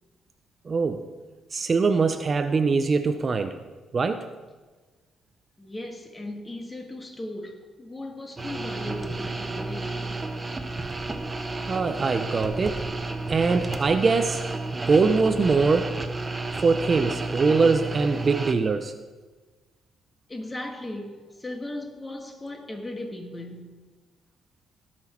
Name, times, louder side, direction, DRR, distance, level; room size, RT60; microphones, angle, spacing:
voice 1, 0.6-1.0 1.5-3.6 3.9-4.3 11.7-12.8 13.3-14.4 14.7-16.0 16.6-18.9, right 4 dB, 40° right, 0.6 m, -22 dB
voice 2, 5.6-10.3 20.3-23.9, left 1 dB, 20° left, 1.7 m, -37 dB
sound 1, 8.4-18.5, right 2 dB, 25° right, 1.0 m, -32 dB
17.0 x 6.1 x 4.4 m
cardioid pair, 90°, 0 cm